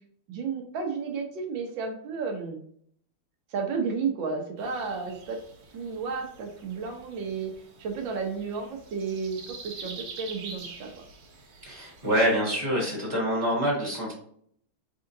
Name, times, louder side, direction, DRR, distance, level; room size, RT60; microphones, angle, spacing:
voice 1, 0.3-2.6 3.5-5.4 5.7-7.5 7.8-10.9, right 5 dB, 65° right, 3 dB, 1.6 m, -32 dB
sound 1, 4.6-12.3, right 4 dB, 80° right, 2.0 m, -46 dB
voice 2, 11.6-14.1, equal, 20° right, -4 dB, 1.8 m, -26 dB
4.8 x 3.8 x 2.6 m, 0.64 s
omnidirectional pair, 2.3 m